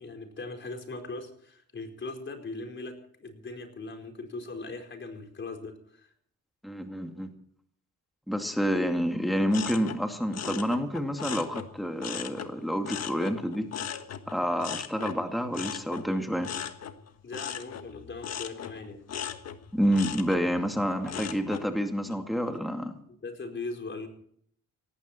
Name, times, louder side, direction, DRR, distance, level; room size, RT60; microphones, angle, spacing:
voice 1, 0.0-6.1 17.2-19.0 23.1-24.1, left 3 dB, 40° left, 5 dB, 4.6 m, -39 dB
voice 2, 6.6-7.3 8.3-13.7 14.3-16.5 19.7-22.9, equal, ahead, 4 dB, 2.4 m, -28 dB
sound 1, 9.5-12.5 12.8-21.7 22.1-22.6, left 8 dB, 55° left, 1.5 m, -38 dB
18.0 x 15.5 x 4.4 m, 0.64 s
cardioid pair, 90°, 30 cm